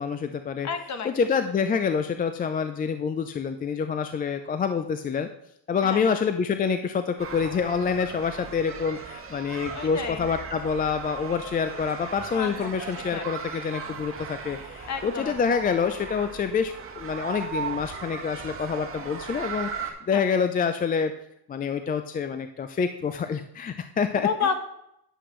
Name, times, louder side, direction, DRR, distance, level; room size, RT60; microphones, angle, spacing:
voice 1, 0.0-0.7 1.0-5.3 5.7-21.1 21.5-24.3, left 6 dB, 20° left, 9 dB, 0.3 m, -27 dB
voice 2, 0.6-1.1 5.8-6.2 9.7-10.2 12.3-12.7 13.1-13.3 14.9-15.3 20.1-20.2 24.2-24.6, left 6 dB, 35° left, 8 dB, 1.1 m, -30 dB
sound 1, 7.2-19.9, right 6 dB, 30° right, 1.5 m, -37 dB
10.0 x 7.7 x 3.1 m, 0.77 s
cardioid pair, 105°, 46 cm